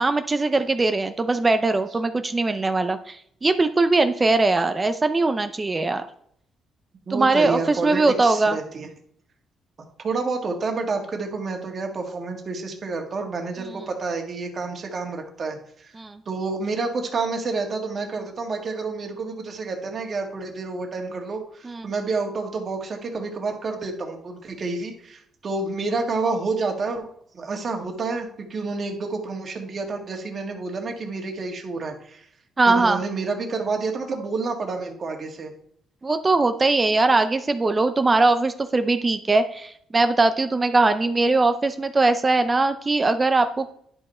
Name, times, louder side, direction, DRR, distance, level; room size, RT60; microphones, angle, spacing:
voice 1, 0.0-6.1 7.1-8.6 16.0-16.2 21.6-21.9 32.6-33.0 36.0-43.7, right 3 dB, 25° right, 9 dB, 0.7 m, -21 dB
voice 2, 7.1-8.9 10.0-16.0 16.3-27.1 27.3-32.3 32.7-35.5, right 3 dB, 45° right, 2 dB, 1.8 m, -29 dB
10.5 x 5.4 x 4.3 m, 0.67 s
cardioid pair, 90°, 0 cm